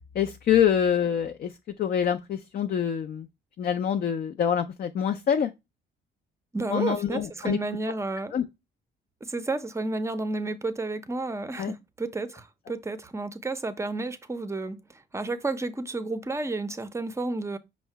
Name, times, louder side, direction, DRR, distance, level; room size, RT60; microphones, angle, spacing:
voice 1, 0.0-1.5 1.8-3.3 3.6-5.5 6.7-7.6 8.3-8.4 11.6-11.7, left 8 dB, 50° left, 0.4 m, -25 dB
voice 2, 6.5-8.3 9.2-17.6, right 3 dB, 15° right, 0.5 m, -31 dB
5.5 x 2.0 x 4.5 m
cardioid pair, 90°, 20 cm